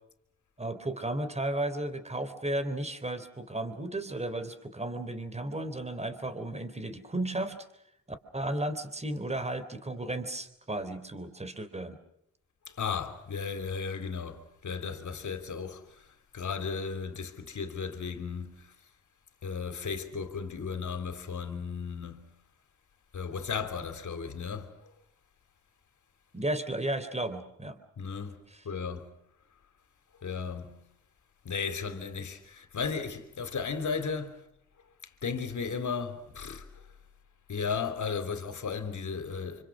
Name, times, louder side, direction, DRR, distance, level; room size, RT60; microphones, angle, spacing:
voice 1, 0.6-7.6 8.3-12.0 26.3-27.8, right 1 dB, 20° right, 3.6 m, -34 dB
voice 2, 12.7-16.1 16.3-18.7 19.4-22.3 23.1-24.7 28.0-29.1 30.2-30.8 31.5-34.4 35.2-36.8 37.5-39.6, left 5 dB, 60° left, 3.5 m, -35 dB
27.5 x 25.0 x 6.3 m
supercardioid pair, 60°, 34 cm